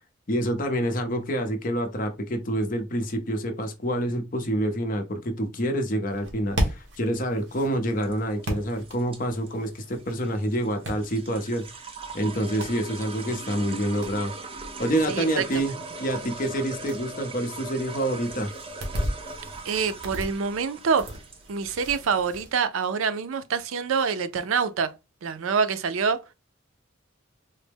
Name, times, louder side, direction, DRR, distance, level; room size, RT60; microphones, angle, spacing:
voice 1, 0.3-11.7 12.1-14.3 14.8-18.5, right 1 dB, 40° left, 0.6 m, -27 dB
sound 1, 6.1-22.5, equal, 60° right, 1.2 m, -37 dB
sound 2, 7.9-22.4, right 3 dB, 25° right, 0.5 m, -40 dB
voice 2, 15.1-15.5 19.6-21.1 21.5-24.9 25.2-26.2, right 6 dB, 85° right, 0.4 m, -26 dB
4.0 x 2.0 x 3.4 m
head